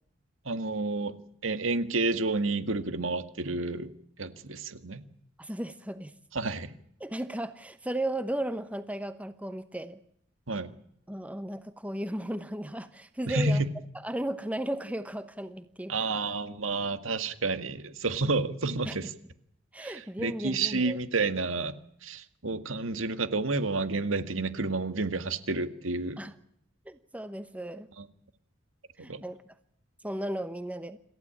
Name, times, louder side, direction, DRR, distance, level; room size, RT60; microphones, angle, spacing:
voice 1, 0.5-1.2 1.4-3.9 4.2-5.0 6.3-6.7 10.5-10.7 13.3-13.7 15.9-19.1 19.8-26.2 28.0-28.1 29.0-29.2, right 3 dB, 75° right, 10 dB, 1.9 m, -30 dB
voice 2, 5.4-6.1 7.0-10.0 11.1-13.6 14.0-16.2 18.8-19.0 19.7-21.0 26.2-26.3 26.9-27.9 29.0-29.4 30.0-31.0, right 1 dB, 5° right, 11 dB, 1.0 m, -35 dB
27.5 x 14.5 x 8.7 m, 0.73 s
head